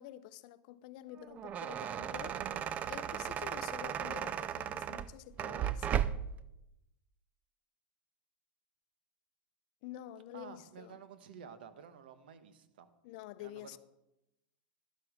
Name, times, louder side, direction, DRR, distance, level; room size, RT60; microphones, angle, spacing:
voice 1, 0.0-2.5 2.9-6.2 9.8-11.0 13.0-13.8, left 14 dB, 60° left, 0.6 m, -48 dB
sound 1, 1.2-6.4, right 9 dB, 30° right, 0.4 m, -36 dB
voice 2, 10.3-12.9 13.4-13.8, right 7 dB, 80° right, 1.2 m, -52 dB
11.5 x 7.9 x 5.0 m
supercardioid pair, 130°, 5 cm